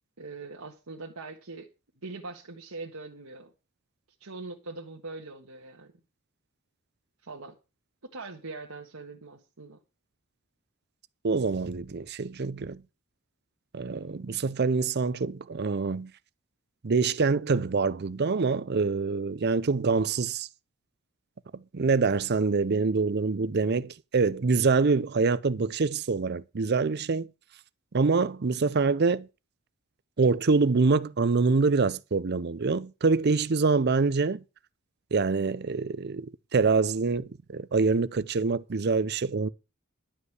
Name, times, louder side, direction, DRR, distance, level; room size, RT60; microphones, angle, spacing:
voice 1, 0.2-1.7 2.0-3.5 4.2-5.9 7.2-7.6 8.0-9.8, right 3 dB, 90° right, 1.6 m, -42 dB
voice 2, 11.2-12.8 13.7-16.1 16.8-20.5 21.5-27.3 27.9-29.3 30.2-34.4 35.1-39.5, right 4 dB, 50° right, 0.6 m, -25 dB
11.5 x 5.3 x 8.0 m
head